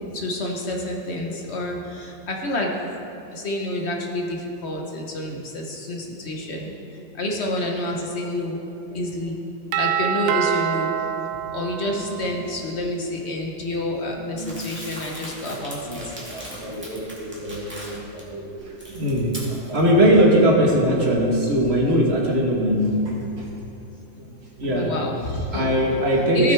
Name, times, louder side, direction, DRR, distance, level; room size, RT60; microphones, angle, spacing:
voice 1, 0.1-3.0 3.3-8.6 8.9-9.5 9.8-10.9 11.5-16.0 24.7-25.7 26.3-26.5, left 1 dB, 45° left, 0 dB, 1.0 m, -28 dB
Doorbell, 9.7-12.5, right 9 dB, 80° right, 1.3 m, -26 dB
voice 2, 13.9-14.6 15.9-23.5 24.2-24.9 25.5-26.5, equal, 35° right, -2 dB, 1.4 m, -22 dB
Crumpling crinkling, 14.4-18.2 18.6-19.9, equal, 5° right, 1.8 m, -39 dB
15.5 x 6.3 x 3.5 m, 2.8 s
omnidirectional pair, 2.0 m